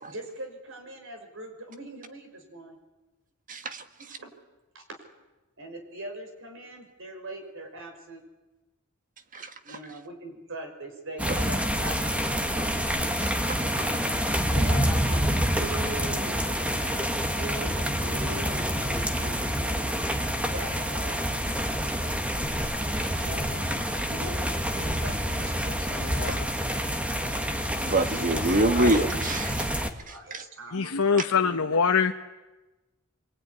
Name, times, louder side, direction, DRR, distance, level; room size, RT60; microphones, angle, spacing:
voice 1, 0.1-2.8 4.0-4.3 4.7-4.8 5.6-8.2 9.6-12.7 14.5-17.1 17.4-19.8 20.5-21.2 23.2-23.7 24.0-26.3 28.0-28.6 30.1-31.4 32.0-32.1, right 1 dB, 60° right, 5 dB, 5.8 m, -41 dB
voice 2, 3.5-3.8 9.3-9.5 13.5-13.9 26.3-26.4 27.8-29.7 30.3-30.4, right 2 dB, 35° right, 9 dB, 1.6 m, -26 dB
sound 1, 11.2-29.9, equal, 5° right, 1.8 m, -27 dB
voice 3, 25.9-26.4 28.3-29.0 30.7-32.1, left 5 dB, 70° left, 5 dB, 1.0 m, -25 dB
25.5 x 23.0 x 9.8 m, 1.1 s
head